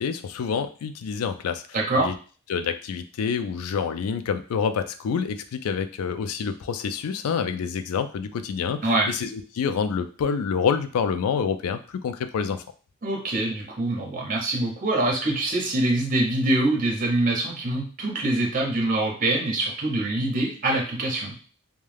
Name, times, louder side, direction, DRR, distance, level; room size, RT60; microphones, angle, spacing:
voice 1, 0.0-1.6 2.0-2.1 2.5-12.6, left 6 dB, 80° left, 9 dB, 0.3 m, -27 dB
voice 2, 1.7-2.1 8.8-9.1 13.0-21.3, right 2 dB, 40° right, -1 dB, 0.8 m, -24 dB
2.3 x 2.2 x 3.2 m, 0.39 s
head